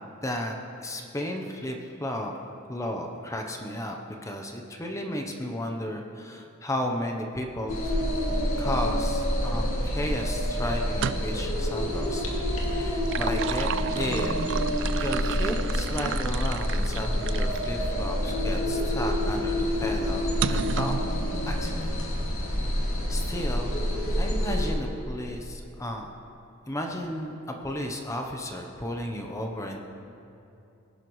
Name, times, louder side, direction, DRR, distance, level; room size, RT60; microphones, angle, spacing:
voice 1, 0.2-0.6 0.8-2.3 2.7-7.9 8.6-14.3 15.0-19.5 19.8-21.1 21.5-21.9 23.1-23.7 24.2-26.1 26.7-29.8, left 1 dB, 15° left, 2 dB, 0.8 m, -33 dB
sound 1, 7.7-24.7, equal, 75° left, 2.2 m, -27 dB
sound 2, 10.9-11.5 12.8-17.7 18.3-18.4 20.4-21.1, right 8 dB, 60° right, 0.3 m, -33 dB
20.5 x 11.5 x 3.1 m, 2.7 s
head